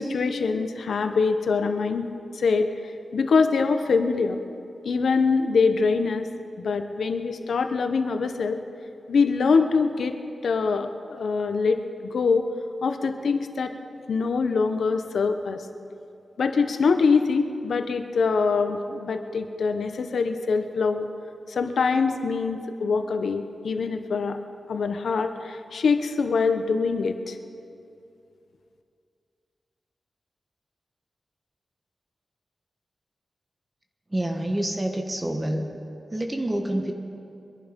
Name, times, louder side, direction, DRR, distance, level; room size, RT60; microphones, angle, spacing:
voice 1, 0.0-2.7 3.1-4.4 4.8-6.3 6.6-8.6 9.1-11.8 12.1-12.5 12.8-13.7 14.1-15.6 16.4-21.1 21.5-24.4 24.7-27.4, left 4 dB, 90° left, 7 dB, 1.0 m, -24 dB
voice 2, 34.1-35.7 36.1-36.9, right 1 dB, 20° right, 3 dB, 1.3 m, -27 dB
23.0 x 11.0 x 5.3 m, 2.6 s
wide cardioid pair, 80°, 0 cm